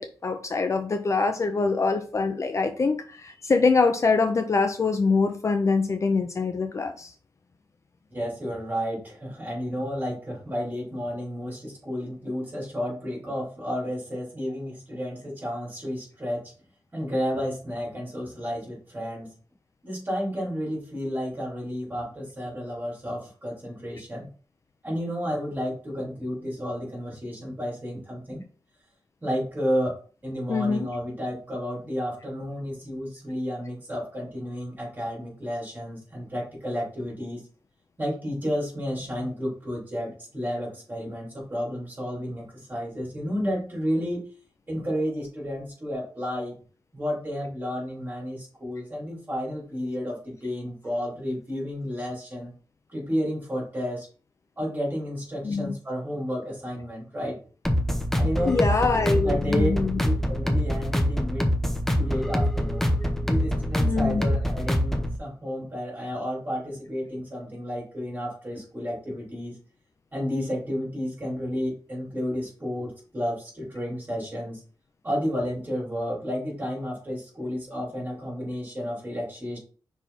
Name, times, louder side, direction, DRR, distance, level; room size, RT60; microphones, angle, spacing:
voice 1, 0.0-7.1 30.5-30.9 55.4-55.7 58.5-60.0 63.8-64.2, left 4 dB, 40° left, 7 dB, 0.5 m, -24 dB
voice 2, 8.1-16.5 16.9-19.3 19.8-24.3 24.8-28.4 29.2-37.4 38.0-44.3 44.7-46.6 46.9-52.5 52.9-54.1 54.6-57.4 58.2-58.6 59.2-59.7 60.0-61.6 62.0-62.9 63.2-69.6 70.1-74.6 75.0-79.6, equal, 20° right, -4 dB, 3.6 m, -31 dB
sound 1, 57.6-65.2, equal, 5° left, 0.8 m, -25 dB
5.6 x 4.7 x 4.1 m, 0.40 s
wide cardioid pair, 175°, 8 cm